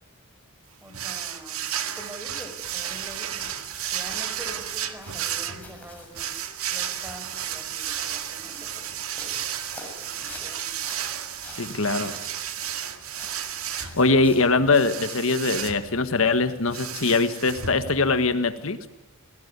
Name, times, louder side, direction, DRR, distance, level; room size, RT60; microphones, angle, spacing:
voice 1, 0.8-3.6 3.9-6.4 6.7-9.5 10.0-10.8, equal, 10° right, 5 dB, 4.9 m, -45 dB
sound 1, 0.9-18.3, right 10 dB, 75° right, 2.1 m, -33 dB
sound 2, 2.6-14.4, left 2 dB, 5° left, 7.1 m, -48 dB
voice 2, 11.6-12.1 13.7-18.9, left 3 dB, 65° left, 10 dB, 1.5 m, -22 dB
29.0 x 18.0 x 9.7 m, 0.98 s
head